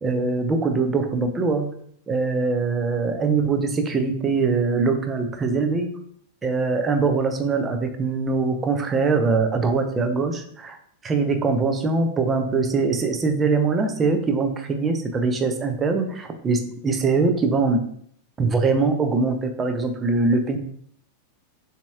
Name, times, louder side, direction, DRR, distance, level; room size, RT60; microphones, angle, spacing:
voice 1, 0.0-1.7 2.1-5.9 6.4-10.8 11.0-17.8 18.4-20.6, right 4 dB, 20° right, 5 dB, 0.6 m, -22 dB
6.9 x 2.9 x 2.3 m, 0.63 s
figure-of-eight pair, 90°, 0 cm